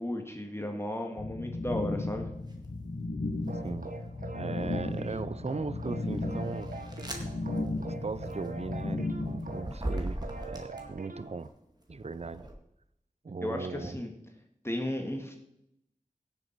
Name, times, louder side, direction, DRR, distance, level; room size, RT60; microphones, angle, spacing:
voice 1, 0.0-2.3 13.4-14.1 14.6-15.4, left 1 dB, 20° left, 3 dB, 1.7 m, -34 dB
sound 1, 1.2-9.7, left 2 dB, 60° left, 1.1 m, -35 dB
sound 2, 2.5-2.8 3.4-4.2 4.8-11.2 11.8-12.5, right 1 dB, 30° right, 2.1 m, -40 dB
sound 3, 3.5-11.5, right 3 dB, 75° right, 1.1 m, -43 dB
voice 2, 4.3-6.7 7.9-11.5 11.9-12.5 13.2-14.0, right 4 dB, 50° right, 16 dB, 0.5 m, -38 dB
17.0 x 7.0 x 4.6 m, 0.79 s
wide cardioid pair, 55°, 14 cm